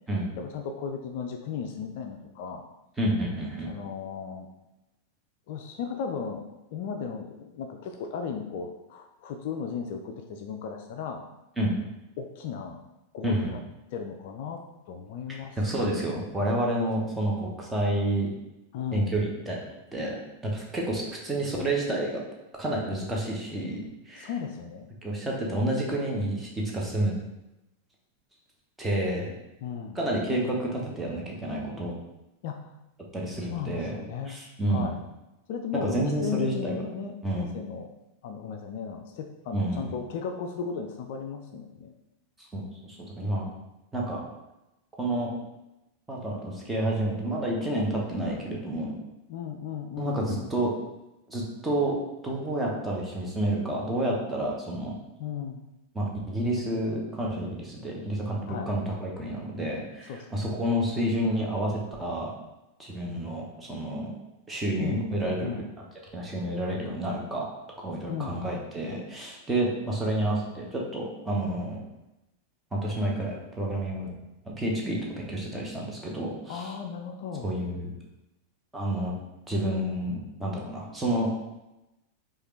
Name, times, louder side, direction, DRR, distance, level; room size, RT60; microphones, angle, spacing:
voice 1, 0.4-2.7 3.7-4.5 5.5-6.4 6.7-11.2 12.2-12.8 13.1-13.6 13.9-15.6 18.7-19.2 24.2-24.9 29.6-30.0 32.4-32.7 33.5-34.4 34.7-35.0 35.5-37.9 38.2-41.9 49.3-50.5 55.2-55.6 58.5-58.7 60.1-60.6 64.8-65.0 65.4-65.7 68.1-68.4 76.5-77.5, left 6 dB, 50° left, 4 dB, 0.3 m, -35 dB
voice 2, 3.0-3.7 11.6-11.8 13.2-13.5 15.3-18.3 18.9-19.6 19.9-20.2 20.4-22.1 22.6-23.8 24.1-24.3 25.0-27.1 28.8-29.3 29.9-31.9 33.1-34.0 34.3-34.9 35.8-36.8 37.2-37.5 39.5-40.0 42.4-43.5 43.9-44.2 45.0-45.3 46.1-49.0 50.0-50.7 51.3-51.9 52.2-54.9 55.9-62.3 62.8-64.1 64.5-65.8 66.1-67.4 67.8-71.8 72.7-74.1 74.4-76.7 77.4-77.9 78.7-79.1 79.5-81.3, right 1 dB, 10° right, -2 dB, 0.9 m, -29 dB
4.8 x 2.5 x 3.2 m, 0.96 s
figure-of-eight pair, 90°, 0 cm